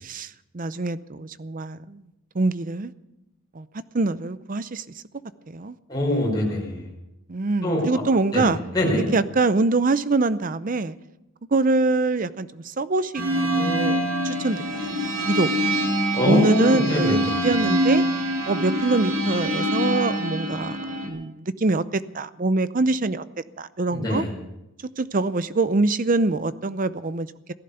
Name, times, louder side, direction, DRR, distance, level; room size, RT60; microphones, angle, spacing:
voice 1, 0.0-2.0 2.3-2.9 3.5-3.7 3.9-4.8 5.5-5.8 7.3-8.6 9.1-11.0 11.5-14.0 14.2-14.9 15.3-15.5 16.2-17.2 17.4-18.0 18.5-23.2 23.6-24.2 25.0-27.3, right 3 dB, 40° right, 0.6 m, -24 dB
voice 2, 5.9-6.9 7.6-7.9 8.3-9.1 16.1-17.3 23.9-24.3, left 1 dB, 20° left, 5.1 m, -23 dB
sound 1, 13.1-21.1, equal, 75° right, 3.2 m, -25 dB
16.0 x 11.0 x 6.8 m
head